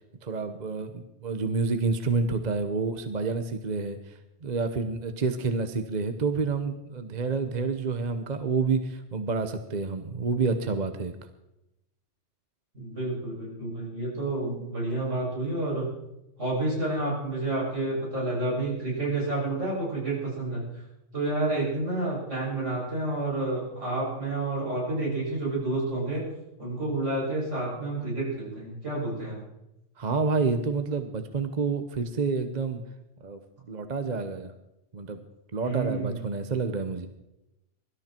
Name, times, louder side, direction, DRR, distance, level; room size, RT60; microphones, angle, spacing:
voice 1, 0.2-11.1 30.0-32.8 33.2-33.4 33.7-34.5 34.9-35.2 35.5-37.1, right 4 dB, 40° right, 8 dB, 1.0 m, -29 dB
voice 2, 12.7-15.9 16.4-20.8 21.1-26.2 26.6-29.4 35.6-36.3, right 2 dB, 75° right, -5 dB, 7.9 m, -29 dB
23.0 x 13.0 x 4.5 m, 0.92 s
omnidirectional pair, 1.2 m